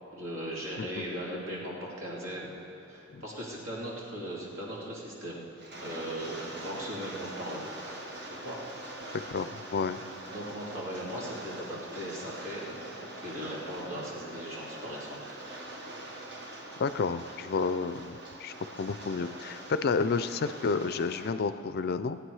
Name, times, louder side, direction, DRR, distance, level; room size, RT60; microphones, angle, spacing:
voice 1, 0.1-2.5 2.9-5.4 5.8-7.6 8.2-8.6 9.0-9.2 10.3-12.7 13.0-15.4, equal, 70° right, -5 dB, 2.9 m, -38 dB
voice 2, 0.8-1.1 3.1-3.2 9.3-10.0 16.8-22.2, left 4 dB, 45° left, 12 dB, 0.4 m, -31 dB
Rain, 5.6-21.3, right 1 dB, 55° right, 1.5 m, -44 dB
17.5 x 9.0 x 4.8 m, 2.8 s
head